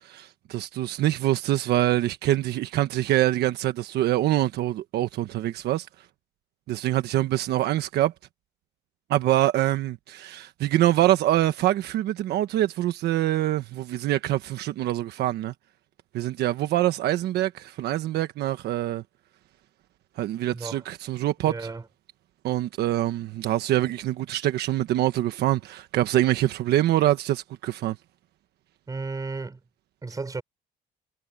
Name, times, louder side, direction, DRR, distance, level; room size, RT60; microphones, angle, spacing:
voice 1, 0.0-5.9 6.7-8.1 9.1-15.5 16.1-19.0 20.2-21.7 22.4-28.0, right 14 dB, 75° right, 1.3 m, -25 dB
voice 2, 20.5-20.8 21.4-21.9 28.9-29.6 30.0-30.4, right 3 dB, 20° right, 5.0 m, -33 dB
cardioid pair, 110°, 17 cm